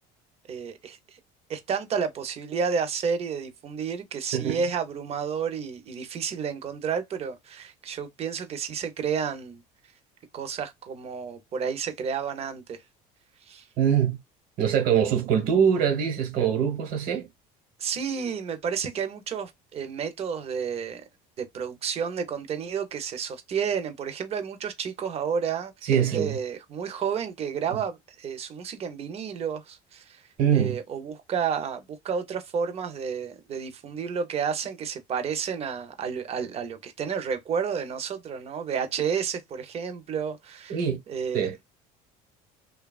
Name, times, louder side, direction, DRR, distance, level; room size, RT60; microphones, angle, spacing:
voice 1, 0.5-1.2 1.5-9.6 10.3-12.8 13.5-13.7 17.8-21.0 21.4-30.2 30.5-40.8 41.1-41.5, right 6 dB, 35° right, 0.7 m, -31 dB
voice 2, 4.3-4.6 13.8-14.2 14.6-17.3 25.9-26.4 30.4-30.8 40.7-41.0 41.3-41.5, right 8 dB, 60° right, 1.2 m, -23 dB
2.8 x 2.3 x 2.3 m
cardioid pair, 125°, 17 cm